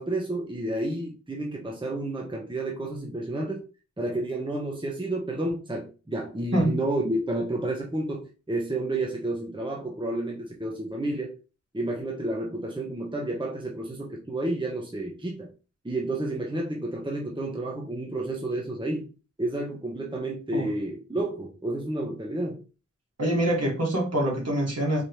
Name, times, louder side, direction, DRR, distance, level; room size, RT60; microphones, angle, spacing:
voice 1, 0.0-3.6 4.0-11.3 11.7-15.5 15.8-19.1 19.4-22.6, right 1 dB, 15° right, 0 dB, 1.0 m, -30 dB
voice 2, 23.2-25.0, right 1 dB, 55° right, -1 dB, 1.8 m, -25 dB
4.4 x 3.0 x 3.1 m, 0.33 s
wide cardioid pair, 55°, 31 cm